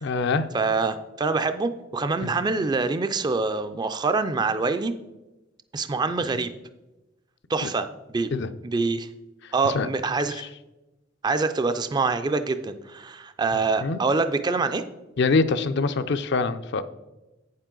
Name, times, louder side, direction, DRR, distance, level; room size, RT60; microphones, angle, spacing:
voice 1, 0.0-0.5 2.2-2.3 7.6-7.7 8.3-8.5 9.6-9.9 10.4-10.5 13.8-14.0 15.2-16.8, left 4 dB, 60° left, 11 dB, 0.5 m, -24 dB
voice 2, 0.5-4.9 5.7-6.5 7.5-8.3 8.6-9.1 9.5-10.5 11.2-14.8, right 3 dB, 20° right, 10 dB, 0.3 m, -25 dB
8.7 x 7.2 x 3.8 m, 1.0 s
head